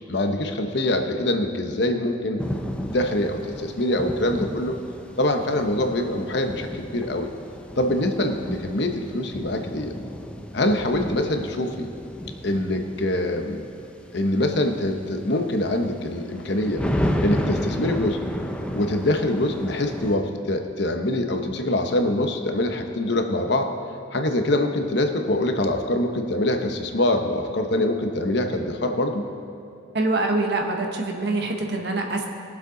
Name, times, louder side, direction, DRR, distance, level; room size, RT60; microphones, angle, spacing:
voice 1, 0.1-2.4 2.8-4.8 5.2-7.3 7.8-9.9 10.5-11.9 12.4-13.7 14.1-16.8 17.2-18.2 18.7-23.7 24.1-29.2, left 1 dB, 65° left, 5 dB, 1.0 m, -24 dB
sound 1, 2.4-20.2, equal, 5° left, 0.7 m, -32 dB
voice 2, 29.9-32.3, right 2 dB, 60° right, 2 dB, 1.3 m, -24 dB
21.0 x 7.5 x 3.9 m, 2.5 s
head